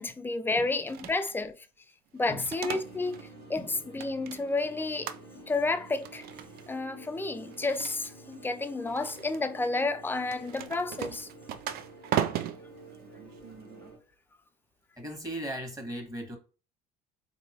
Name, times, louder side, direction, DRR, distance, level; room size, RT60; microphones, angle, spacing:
voice 1, 0.0-1.5 2.1-5.1 5.5-6.3 6.7-11.3, left 3 dB, 10° left, 0.5 m, -31 dB
sound 1, 0.9-1.4 2.2-3.3 3.6-4.7 5.0-5.6 5.9-6.7 7.4-8.4 8.9-9.4 10.2-13.9, right 10 dB, 55° right, 0.4 m, -37 dB
sound 2, 2.6-14.0, right 3 dB, 90° right, 2.1 m, -50 dB
voice 2, 15.0-16.4, right 1 dB, 15° right, 1.6 m, -38 dB
4.0 x 2.9 x 2.8 m
hypercardioid pair, 75°, 19 cm